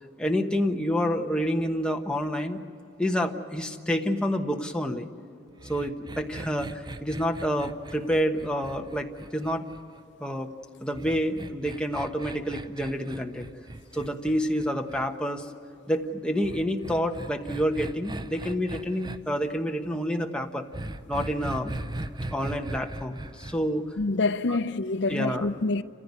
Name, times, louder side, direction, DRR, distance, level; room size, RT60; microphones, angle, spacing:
voice 1, 0.2-2.6 3.0-5.1 5.6-9.1 9.3-9.7 10.2-10.5 10.8-13.5 13.9-15.5 15.9-20.7 21.1-21.8 22.3-23.8 24.5-24.6 25.1-25.5, equal, 5° left, 1.2 m, -28 dB
sound 1, 5.6-10.0 10.9-15.1 16.4-19.2 20.7-23.5, right 1 dB, 20° right, 0.6 m, -38 dB
voice 2, 24.0-25.8, left 3 dB, 60° left, 0.6 m, -26 dB
28.5 x 15.0 x 9.6 m
head